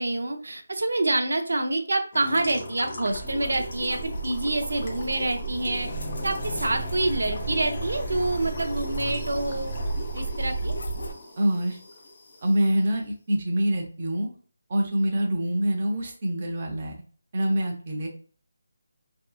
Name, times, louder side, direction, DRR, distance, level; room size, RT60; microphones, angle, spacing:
voice 1, 0.0-5.9 6.2-9.7 10.1-10.7, right 2 dB, 80° right, 6 dB, 0.4 m, -27 dB
sound 1, 2.1-12.6, left 1 dB, 30° left, 0.5 m, -37 dB
sound 2, 3.1-11.1, right 3 dB, 90° left, 0.6 m, -34 dB
voice 2, 11.4-11.8 12.4-14.3 14.7-17.0 17.3-18.1, equal, 30° right, 0 dB, 0.5 m, -25 dB
2.6 x 2.3 x 2.3 m, 0.42 s
figure-of-eight pair, 175°, 0 cm